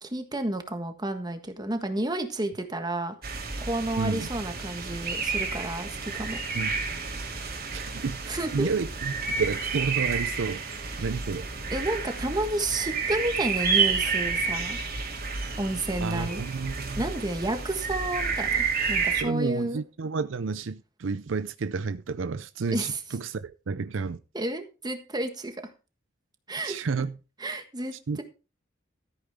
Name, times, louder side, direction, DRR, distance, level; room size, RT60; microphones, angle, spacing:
voice 1, 0.0-3.1 3.7-6.4 8.3-8.7 11.7-14.8 15.6-16.4 17.0-19.8 22.7-23.0 24.3-25.7 26.5-26.8 27.4-28.2, right 1 dB, 20° right, 1.5 m, -31 dB
sound 1, 3.2-19.2, right 5 dB, 50° right, 2.7 m, -30 dB
voice 2, 4.0-4.3 6.5-6.8 7.7-11.5 16.0-17.0 19.2-24.2 26.6-27.2 28.1-28.2, right 4 dB, 75° right, 0.5 m, -31 dB
13.5 x 8.9 x 3.6 m
head